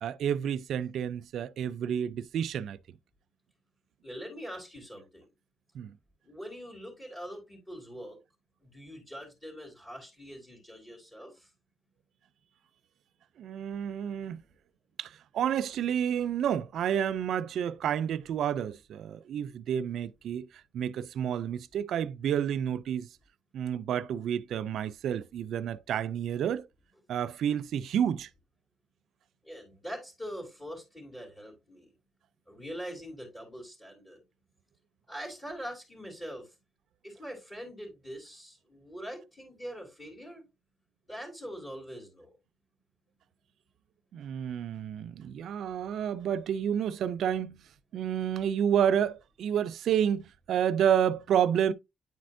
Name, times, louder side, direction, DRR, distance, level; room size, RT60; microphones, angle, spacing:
voice 1, 0.0-2.8 5.7-5.9 13.4-14.4 15.0-20.5 20.7-23.1 23.5-26.7 27.1-28.3 44.1-47.6 47.9-51.7, right 9 dB, 70° right, 0.4 m, -30 dB
voice 2, 4.0-5.2 6.2-8.2 8.6-11.5 29.4-31.9 32.5-34.2 35.1-36.5 37.0-40.4 41.1-42.3, equal, 20° left, 3.2 m, -43 dB
9.6 x 4.3 x 2.6 m
cardioid pair, 90°, 0 cm